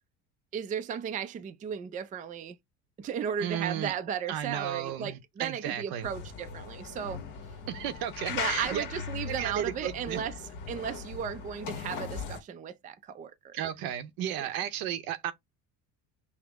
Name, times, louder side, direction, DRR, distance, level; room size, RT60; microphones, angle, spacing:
voice 1, 0.5-2.6 3.0-7.2 8.3-13.6 14.4-14.6, right 8 dB, 25° right, 0.4 m, -35 dB
voice 2, 3.4-3.9 4.3-6.1 7.7-8.8 9.2-10.2 13.5-15.3, right 10 dB, 80° right, 0.8 m, -34 dB
sound 1, 6.0-12.4, left 6 dB, 60° left, 1.2 m, -39 dB
5.9 x 2.1 x 3.5 m
cardioid pair, 135°, 35 cm